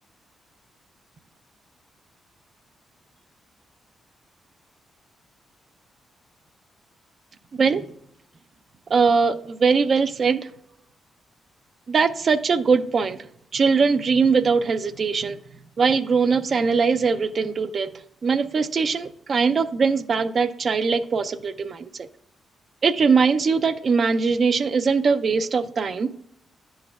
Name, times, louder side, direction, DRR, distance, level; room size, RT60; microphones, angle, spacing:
voice 1, 7.5-7.8 8.9-10.4 11.9-13.2 13.5-15.4 15.8-17.9 18.2-22.1 22.8-26.1, right 5 dB, 50° right, 11 dB, 0.5 m, -21 dB
9.8 x 6.3 x 2.3 m, 0.74 s
cardioid pair, 80°, 0 cm